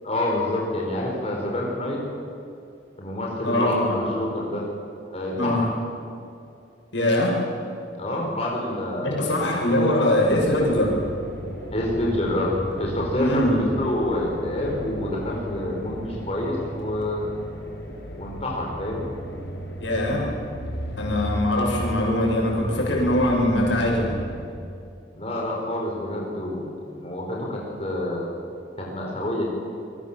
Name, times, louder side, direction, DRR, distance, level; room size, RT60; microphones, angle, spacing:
voice 1, 0.0-2.0 3.0-4.6 5.1-5.7 8.0-9.5 11.7-17.3 18.1-19.0 25.1-28.2 28.8-29.4, left 1 dB, 35° left, -2 dB, 4.8 m, -27 dB
voice 2, 3.4-4.0 5.4-5.6 6.9-7.4 9.0-10.9 13.2-13.5 19.8-20.2 21.0-24.1, left 1 dB, 80° left, -1 dB, 7.5 m, -22 dB
sound 1, 10.3-24.5, equal, 60° left, 4.6 m, -35 dB
27.5 x 22.0 x 7.6 m, 2.6 s
head